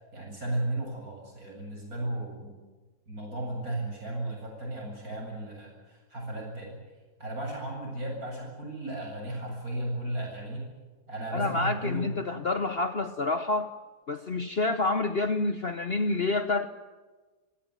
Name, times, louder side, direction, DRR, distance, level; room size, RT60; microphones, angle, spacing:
voice 1, 0.1-2.5 3.1-6.7 7.2-10.7 11.1-12.1, right 1 dB, 60° right, 0 dB, 8.5 m, -35 dB
voice 2, 11.3-13.7 14.1-16.7, left 3 dB, 45° left, 10 dB, 1.0 m, -28 dB
25.5 x 16.5 x 9.4 m, 1.3 s
omnidirectional pair, 1.7 m